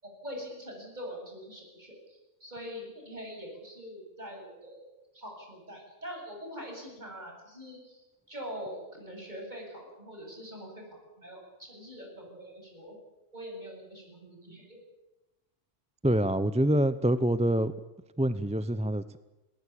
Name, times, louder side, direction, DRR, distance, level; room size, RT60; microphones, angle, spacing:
voice 1, 0.0-4.9 5.1-12.9 13.3-14.8, equal, 35° right, 1 dB, 8.2 m, -43 dB
voice 2, 16.0-17.7 18.2-19.2, right 1 dB, 10° right, 14 dB, 0.5 m, -26 dB
21.5 x 19.5 x 8.6 m, 1.0 s
omnidirectional pair, 1.3 m